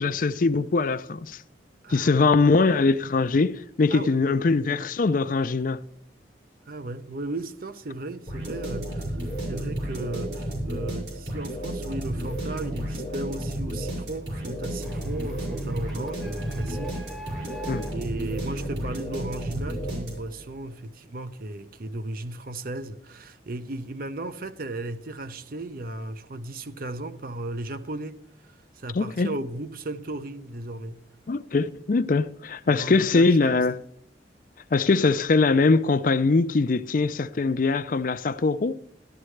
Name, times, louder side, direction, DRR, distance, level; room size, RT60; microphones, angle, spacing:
voice 1, 0.0-1.4 1.9-5.8 17.7-17.9 28.9-29.4 31.3-33.8 34.7-38.7, left 3 dB, 50° left, 0.4 m, -22 dB
voice 2, 1.8-2.2 3.9-4.2 6.7-28.2 28.8-31.0 32.7-33.6, right 2 dB, 55° right, 0.7 m, -35 dB
sound 1, 8.3-20.5, right 1 dB, 85° right, 5.8 m, -32 dB
Printer, 14.8-19.4, right 1 dB, ahead, 0.9 m, -45 dB
13.0 x 12.0 x 3.2 m
head